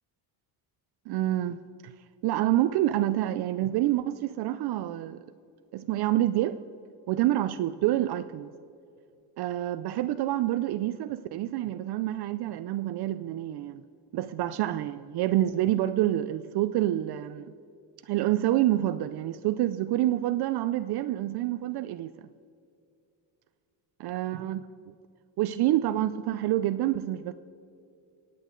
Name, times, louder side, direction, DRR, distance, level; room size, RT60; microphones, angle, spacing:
voice 1, 1.1-1.9 2.2-5.2 5.7-6.6 7.1-8.5 9.4-13.8 14.1-17.5 18.0-22.3 24.0-24.9 25.4-27.3, right 14 dB, 60° right, 0.5 m, -27 dB
23.0 x 8.4 x 3.8 m
cardioid pair, 115°, 44 cm